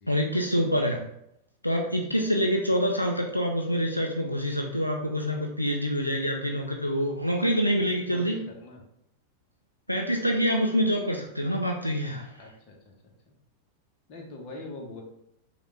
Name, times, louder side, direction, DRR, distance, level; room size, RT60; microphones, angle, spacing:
voice 1, 0.1-1.0 1.6-8.4 9.9-12.3, equal, 90° left, 2 dB, 0.4 m, -26 dB
voice 2, 7.7-8.8 12.4-12.7 13.3-13.4 14.1-15.0, left 2 dB, 40° left, 0 dB, 1.1 m, -42 dB
5.1 x 2.4 x 3.4 m, 0.79 s
figure-of-eight pair, 90°, 0 cm